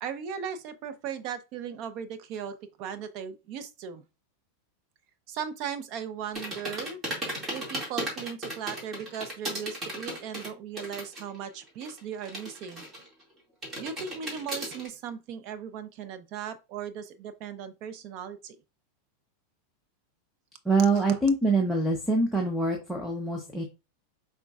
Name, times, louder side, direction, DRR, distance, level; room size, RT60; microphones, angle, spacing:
voice 1, 0.0-4.0 5.3-7.0 7.5-12.9 13.8-18.6, right 8 dB, 45° right, 0.7 m, -37 dB
sound 1, 6.4-11.4 11.6-13.2 13.6-14.9, right 1 dB, 20° right, 2.1 m, -36 dB
voice 2, 20.6-23.6, right 3 dB, ahead, 0.8 m, -25 dB
5.2 x 3.7 x 2.4 m
supercardioid pair, 140°, 0 cm